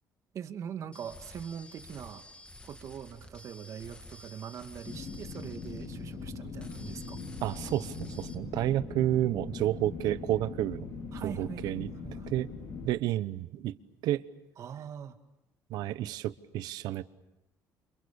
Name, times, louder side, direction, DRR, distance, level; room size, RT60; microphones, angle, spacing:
voice 1, 0.3-2.2 2.6-7.2 11.1-12.5 14.6-15.2, right 8 dB, 50° right, 7 dB, 2.1 m, -42 dB
sound 1, 0.9-6.3 6.6-8.4, left 1 dB, 15° left, 2.8 m, -51 dB
sound 2, 4.9-12.9, left 4 dB, 65° left, 5.5 m, -41 dB
sound 3, 7.4-12.4, left 3 dB, 40° left, 6.5 m, -54 dB
voice 2, 7.4-10.9 11.2-11.9 12.3-12.5 12.8-13.8 14.0-14.2 15.7-17.0, right 13 dB, 85° right, 15 dB, 1.0 m, -30 dB
29.5 x 27.5 x 7.0 m, 0.92 s
cardioid pair, 140°, 7 cm